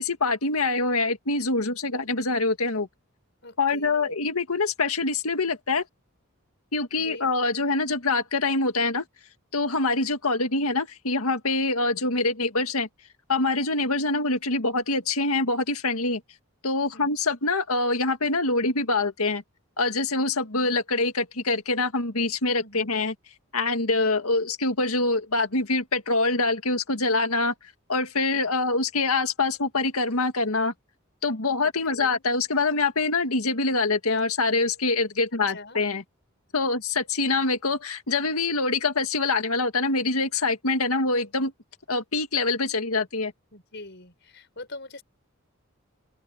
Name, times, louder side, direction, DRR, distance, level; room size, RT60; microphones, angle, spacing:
voice 1, 0.0-2.9 3.6-5.8 6.7-9.0 9.5-12.9 13.3-16.2 16.6-19.4 19.8-23.1 23.5-27.5 27.9-30.7 31.2-36.0 36.5-41.5 41.9-43.3, left 3 dB, 90° left, 2.0 m, -25 dB
voice 2, 3.4-4.2 7.0-7.2 16.9-17.2 22.6-22.9 31.9-32.2 35.5-35.8 43.5-45.0, left 2 dB, 55° left, 5.8 m, -43 dB
open air
head